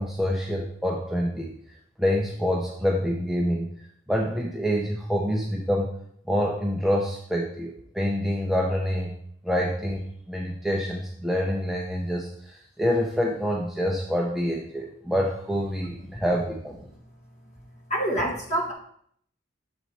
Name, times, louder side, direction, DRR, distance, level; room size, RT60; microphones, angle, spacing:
voice 1, 0.0-1.5 2.0-3.7 4.1-5.9 6.3-9.1 9.4-16.7, equal, ahead, -1 dB, 0.5 m, -26 dB
voice 2, 17.9-18.7, right 1 dB, 35° left, -3 dB, 1.5 m, -26 dB
6.9 x 4.1 x 4.4 m, 0.66 s
head